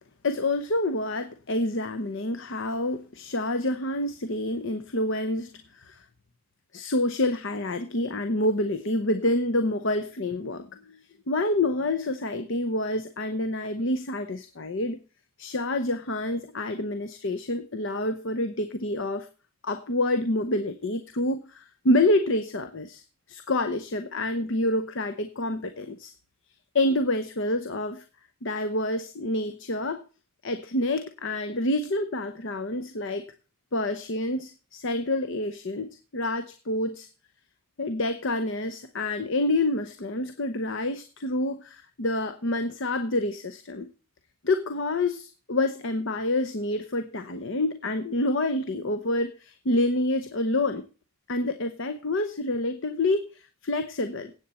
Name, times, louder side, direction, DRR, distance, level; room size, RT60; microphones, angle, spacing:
voice 1, 0.2-6.0 6.7-11.0 11.3-15.0 15.4-19.3 19.6-23.0 23.3-26.1 26.7-28.0 28.4-30.0 30.4-33.2 33.7-35.9 36.1-37.1 37.8-43.9 44.4-50.8 51.3-54.3, left 1 dB, 60° left, 9 dB, 0.8 m, -27 dB
16.5 x 8.3 x 4.2 m, 0.35 s
head